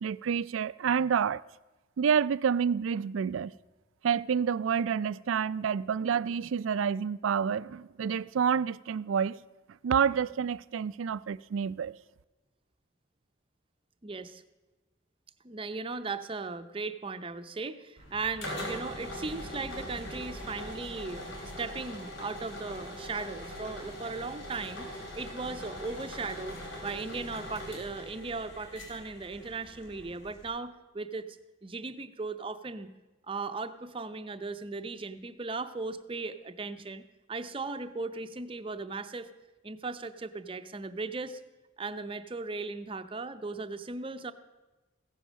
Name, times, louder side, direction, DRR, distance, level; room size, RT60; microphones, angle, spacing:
voice 1, 0.0-1.4 2.0-3.5 4.0-9.4 9.8-11.9, right 7 dB, 85° right, 0.4 m, -28 dB
voice 2, 14.0-14.4 15.4-32.9 33.3-37.0 37.3-39.3 39.6-41.4 41.8-44.3, right 3 dB, 25° right, 0.6 m, -37 dB
sound 1, 18.0-30.5, equal, 75° left, 4.4 m, -42 dB
15.5 x 10.5 x 6.3 m
head